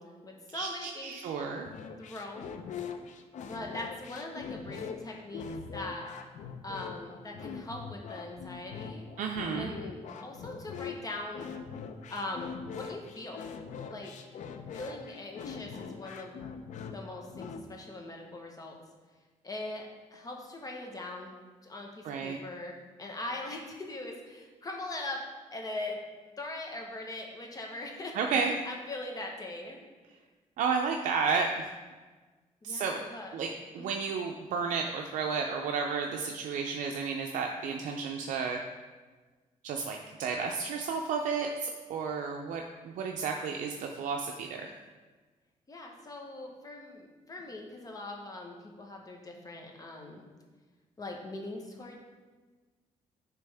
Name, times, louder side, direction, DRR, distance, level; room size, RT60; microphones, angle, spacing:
voice 1, 0.0-1.1 2.0-2.5 3.4-5.5 5.7-6.1 6.6-9.0 9.5-11.5 12.1-13.4 13.9-14.4 14.7-16.4 16.9-18.8 19.4-21.4 21.6-25.2 25.5-26.0 26.4-29.8 32.6-33.3 33.8-34.0 45.7-50.3 51.0-52.0, left 2 dB, 30° left, 1 dB, 1.1 m, -41 dB
voice 2, 0.5-1.7 9.2-9.7 22.0-22.4 28.1-28.5 30.6-31.7 32.6-33.5 33.7-38.6 39.6-44.7, right 5 dB, 80° right, 2 dB, 0.5 m, -32 dB
sound 1, 1.6-17.6, left 6 dB, 70° left, 0.5 m, -42 dB
9.9 x 3.4 x 3.4 m, 1.3 s
cardioid pair, 115°, 13 cm